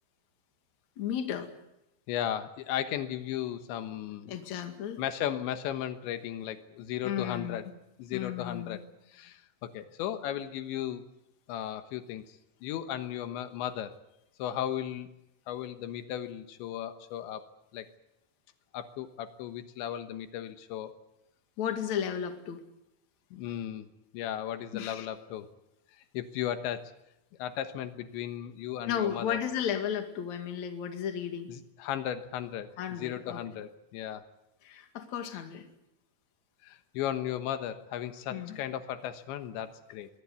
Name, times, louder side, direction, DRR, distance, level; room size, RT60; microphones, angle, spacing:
voice 1, 1.0-1.5 4.3-5.0 7.0-7.6 8.1-8.8 21.6-22.6 24.7-25.1 28.9-31.5 32.8-33.4 34.6-35.6 38.3-38.6, left 9 dB, 50° left, 6 dB, 2.9 m, -34 dB
voice 2, 2.1-4.3 5.0-7.7 8.0-8.8 9.1-11.0 11.5-12.2 12.6-14.0 14.4-15.1 15.5-17.5 17.7-17.9 18.7-21.0 23.3-23.9 24.1-25.5 26.1-26.8 27.4-29.4 31.5-34.2 36.6-40.1, left 11 dB, 85° left, 9 dB, 3.6 m, -35 dB
24.0 x 17.5 x 9.5 m, 0.88 s
omnidirectional pair, 5.1 m